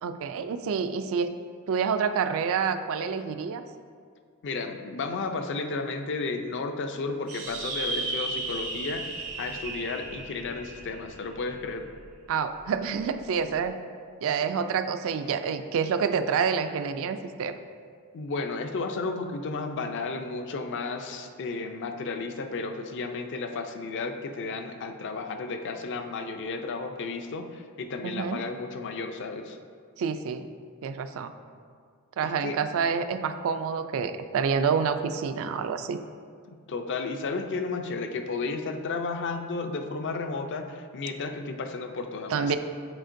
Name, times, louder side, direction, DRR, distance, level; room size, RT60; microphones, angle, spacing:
voice 1, 0.0-1.3 1.7-3.6 12.3-13.8 14.2-17.6 28.0-28.4 30.0-30.5 30.8-31.3 32.2-36.0 42.3-42.6, right 6 dB, 65° right, 10 dB, 0.3 m, -28 dB
voice 2, 4.4-11.9 18.1-29.6 32.2-32.6 36.4-42.6, left 3 dB, 55° left, 6 dB, 0.5 m, -33 dB
sound 1, 7.3-12.0, right 2 dB, 85° right, 1.5 m, -35 dB
8.9 x 4.3 x 2.6 m, 2.1 s
head